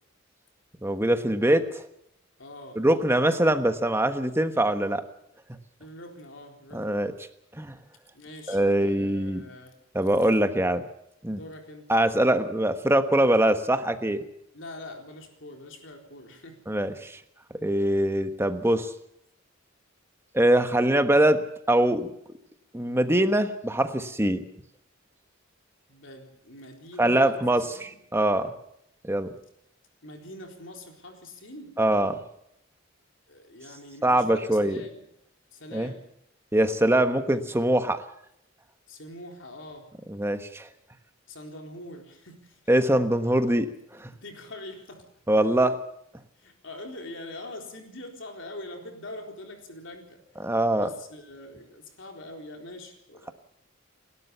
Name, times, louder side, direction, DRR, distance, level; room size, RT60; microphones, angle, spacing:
voice 1, 0.8-1.7 2.8-5.0 6.7-7.1 7.6-7.8 8.5-9.4 9.9-10.8 11.2-11.4 11.9-14.2 16.7-17.2 17.6-18.9 20.3-22.1 22.7-24.4 27.0-28.5 29.0-29.3 31.8-32.2 34.0-34.8 35.7-35.9 36.5-38.0 40.1-40.7 42.7-44.1 45.3-45.8 50.4-50.9, right 1 dB, 10° right, 8 dB, 1.3 m, -23 dB
voice 2, 2.4-2.8 5.8-6.9 8.1-9.8 10.5-10.7 11.3-11.9 14.5-16.6 25.9-28.0 30.0-31.7 33.3-35.1 35.5-36.1 37.3-37.4 38.9-39.9 41.3-42.6 44.2-45.1 46.4-50.2 50.7-53.3, left 1 dB, 65° left, 3 dB, 4.0 m, -43 dB
29.5 x 12.5 x 7.0 m, 0.76 s
head